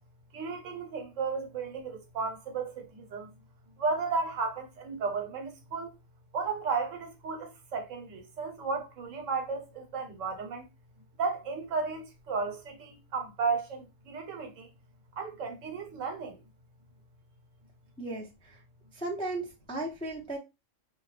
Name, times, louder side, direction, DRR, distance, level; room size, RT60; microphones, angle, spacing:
voice 1, 0.3-3.3 3.8-5.9 6.3-10.6 11.2-14.7 15.2-16.4, right 4 dB, 80° right, 1.1 m, -34 dB
voice 2, 18.0-18.6 18.9-20.4, right 2 dB, 10° left, 0.3 m, -36 dB
2.2 x 2.1 x 3.2 m
omnidirectional pair, 1.3 m